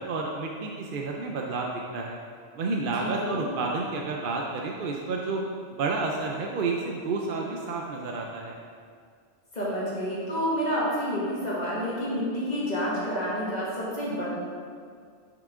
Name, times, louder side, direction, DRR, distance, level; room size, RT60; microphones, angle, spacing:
voice 1, 0.0-2.2 2.6-5.4 5.7-8.6, right 3 dB, 60° right, 0 dB, 0.7 m, -30 dB
voice 2, 3.0-3.5 9.5-14.2, equal, 40° left, -8 dB, 1.8 m, -29 dB
6.0 x 5.9 x 3.6 m, 2.1 s
omnidirectional pair, 1.2 m